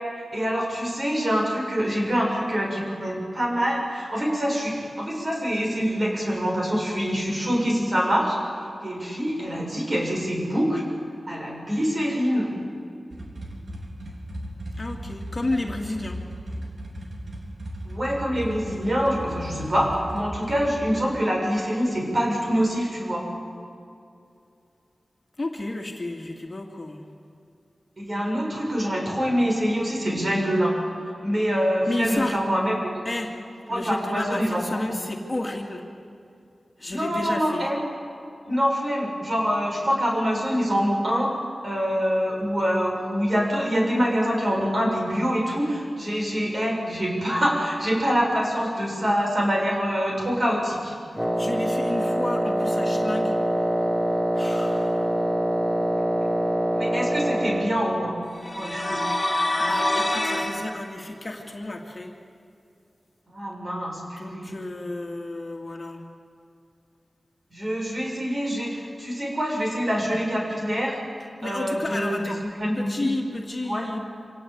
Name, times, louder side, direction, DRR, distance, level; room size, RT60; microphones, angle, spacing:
voice 1, 0.3-8.4 8.8-10.8 11.3-12.5 17.9-23.3 28.0-30.8 31.2-32.9 33.7-34.8 36.9-37.8 38.5-41.3 41.6-51.0 56.7-58.2 58.6-59.1 63.3-64.5 67.5-71.0 71.4-72.3 72.6-73.1 73.7-73.8, equal, 45° right, 0 dB, 7.1 m, -25 dB
sound 1, 13.1-20.8, equal, 65° right, 4.0 m, -36 dB
voice 2, 14.8-16.2 25.4-27.0 31.9-32.4 33.0-33.3 33.7-35.9 36.8-37.7 51.1-53.4 54.3-55.2 59.3-62.1 64.1-66.0 71.4-72.4 72.8-74.1, left 2 dB, 35° left, 1 dB, 2.4 m, -32 dB
Wind instrument woodwind instrument, 51.2-57.8, right 1 dB, 10° right, 1.4 m, -24 dB
sound 2, 58.4-60.6, left 1 dB, 10° left, 5.3 m, -25 dB
26.0 x 18.0 x 8.7 m, 2.5 s
wide cardioid pair, 85°, 0 cm